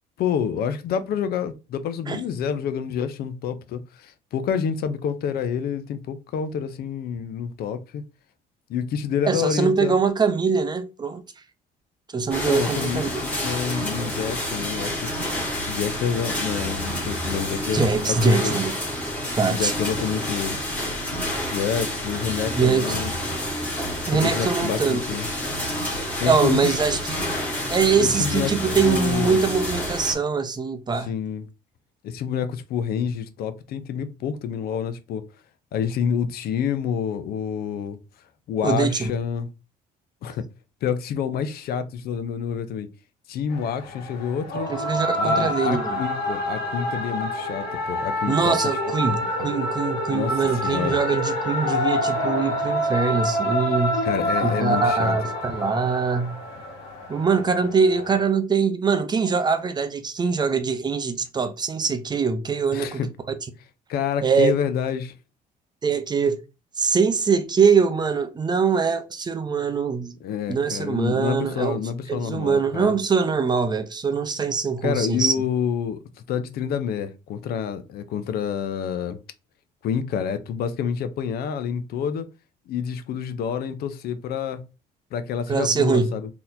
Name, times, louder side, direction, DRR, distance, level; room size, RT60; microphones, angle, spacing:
voice 1, 0.2-8.0 8.7-10.0 12.4-15.1 15.7-18.2 18.4-18.6 19.5-20.6 21.5-23.5 24.1-25.3 26.2-27.0 27.9-28.5 28.8-29.4 31.1-31.5 32.0-35.2 35.7-38.0 38.5-39.5 40.2-40.4 40.8-42.9 43.3-44.7 45.2-48.6 49.4-49.5 50.1-50.3 50.6-51.0 54.0-55.1 62.7-63.1 63.9-65.1 70.2-73.0 74.8-76.0 76.3-79.2 79.8-82.3 82.7-84.6 85.1-86.3, left 7 dB, 65° left, 0.6 m, -28 dB
voice 2, 9.3-11.2 12.1-13.2 17.7-18.8 19.4-19.7 22.5-23.0 24.1-25.0 26.2-27.2 27.7-31.1 38.6-39.1 44.7-46.0 48.3-54.0 54.4-56.4 57.1-63.0 64.2-64.5 65.8-66.4 66.8-70.1 70.5-71.8 72.1-75.3 85.5-86.1, right 5 dB, 25° right, 0.5 m, -23 dB
sound 1, 12.3-30.1, left 1 dB, 10° left, 1.6 m, -29 dB
sound 2, 43.5-58.2, equal, 85° left, 1.2 m, -27 dB
3.9 x 2.9 x 2.5 m
cardioid pair, 110°, 17 cm